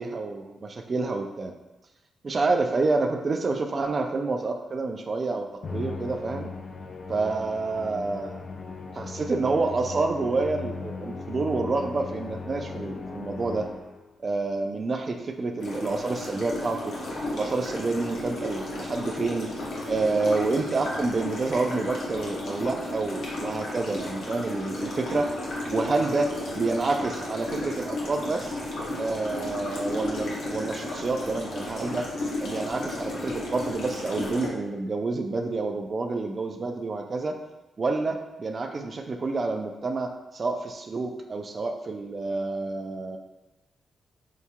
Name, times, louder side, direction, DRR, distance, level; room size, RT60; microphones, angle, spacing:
voice 1, 0.0-1.5 2.2-6.5 7.1-8.4 8.9-13.7 14.2-16.9 17.3-19.5 19.9-25.3 25.7-28.6 29.0-32.1 32.4-37.4 37.8-43.2, right 3 dB, 45° right, 3 dB, 0.4 m, -28 dB
Musical instrument, 5.6-14.2, left 4 dB, 55° left, 0.4 m, -38 dB
sound 1, 15.6-34.5, left 2 dB, 75° left, 0.9 m, -34 dB
4.6 x 2.8 x 2.2 m, 1.0 s
cardioid pair, 75°, 0 cm